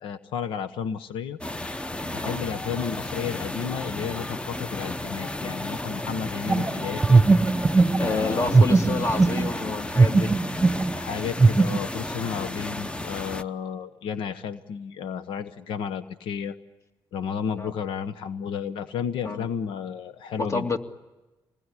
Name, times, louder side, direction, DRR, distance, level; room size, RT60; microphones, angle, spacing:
voice 1, 0.0-1.4 2.1-7.2 8.0-8.7 11.0-16.5 17.1-20.7, left 7 dB, 85° left, 11 dB, 1.1 m, -32 dB
sound 1, 1.4-13.4, left 1 dB, 15° left, 0.9 m, -33 dB
sound 2, 6.5-9.7 10.0-10.9 11.4-11.8, right 3 dB, 15° right, 1.1 m, -19 dB
voice 2, 8.0-10.3 17.6-17.7 19.2-19.5 20.4-20.8, left 3 dB, 35° left, 7 dB, 2.2 m, -28 dB
27.0 x 20.5 x 9.9 m, 1.1 s
cardioid pair, 95°, 8 cm